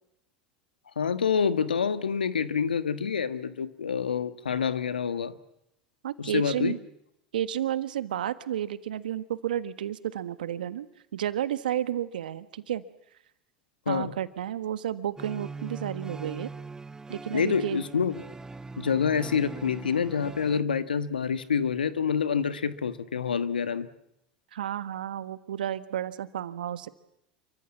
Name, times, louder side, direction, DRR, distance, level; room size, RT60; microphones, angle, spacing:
voice 1, 0.9-5.3 6.2-6.7 13.8-14.1 17.3-18.2 18.8-23.9, left 6 dB, 85° left, 12 dB, 1.5 m, -27 dB
voice 2, 6.0-6.8 7.3-10.9 11.1-12.8 13.9-16.5 17.1-17.8 24.5-26.9, right 11 dB, 80° right, 13 dB, 1.5 m, -31 dB
sound 1, 15.2-20.6, right 3 dB, 10° right, 0.9 m, -41 dB
28.5 x 24.0 x 7.3 m, 0.79 s
hypercardioid pair, 80°, 5 cm